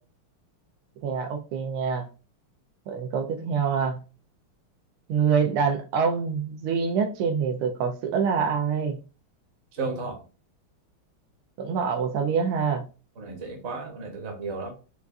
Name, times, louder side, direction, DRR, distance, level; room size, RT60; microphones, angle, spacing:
voice 1, 1.0-2.1 2.9-4.0 5.1-9.0 11.6-12.9, right 6 dB, 85° right, 1.6 m, -25 dB
voice 2, 9.7-10.2 13.2-14.7, right 3 dB, 45° right, 0.9 m, -33 dB
5.2 x 2.5 x 2.3 m
omnidirectional pair, 2.4 m